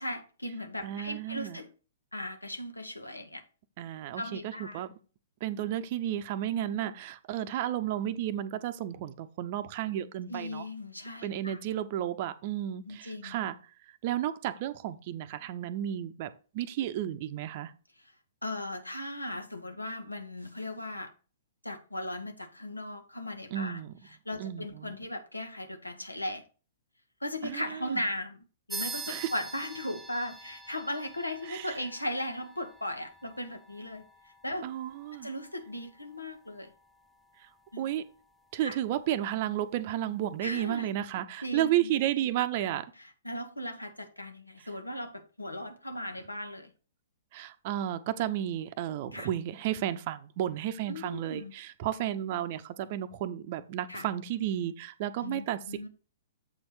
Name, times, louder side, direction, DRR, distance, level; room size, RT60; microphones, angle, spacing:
voice 1, 0.0-1.7 2.1-3.4 4.2-4.9 10.3-11.6 12.9-13.3 18.0-18.1 18.4-21.1 21.6-23.8 24.2-26.4 27.2-34.1 34.4-34.7 35.1-36.7 37.7-37.8 38.6-38.8 40.4-40.9 41.4-41.9 43.0-46.7 49.1-49.3 50.9-51.5 53.9-54.1 55.2-55.9, left 1 dB, 85° left, 1.2 m, -37 dB
voice 2, 0.8-1.6 3.8-4.9 5.4-10.7 11.2-13.5 14.0-17.7 23.5-23.9 24.4-24.9 27.4-28.0 29.1-29.3 31.5-31.7 34.6-35.3 37.8-38.0 38.5-42.8 47.3-55.9, right 12 dB, 40° right, 0.7 m, -32 dB
sound 1, 28.7-38.7, right 3 dB, 5° right, 0.5 m, -46 dB
7.8 x 4.4 x 4.8 m
figure-of-eight pair, 115°, 0 cm